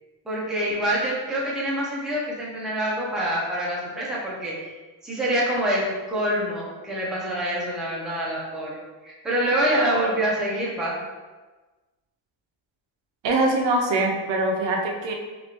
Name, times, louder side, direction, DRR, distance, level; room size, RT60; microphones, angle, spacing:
voice 1, 0.3-4.5 5.0-8.8 9.0-11.0, right 1 dB, ahead, -6 dB, 0.6 m, -26 dB
voice 2, 13.2-15.1, right 2 dB, 65° right, 2 dB, 0.6 m, -23 dB
3.2 x 2.5 x 2.8 m, 1.2 s
cardioid pair, 130°, 48 cm